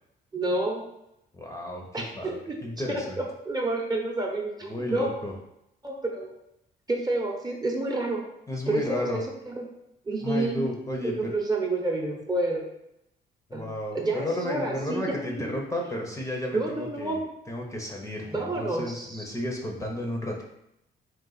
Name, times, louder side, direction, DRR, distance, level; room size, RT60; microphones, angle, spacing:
voice 1, 0.3-0.8 1.9-2.6 2.9-5.1 5.8-6.3 6.9-8.2 8.7-9.6 10.1-10.6 11.0-12.6 13.5-13.7 13.9-15.0 15.3-15.5 16.5-17.2 18.3-19.3, right 2 dB, 20° right, 0 dB, 0.8 m, -29 dB
voice 2, 1.3-1.8 2.1-3.2 4.7-5.3 8.5-9.2 10.2-11.3 13.5-17.2 17.5-20.4, left 1 dB, 15° left, -1 dB, 0.7 m, -32 dB
3.8 x 2.4 x 3.9 m, 0.81 s
cardioid pair, 90°, 20 cm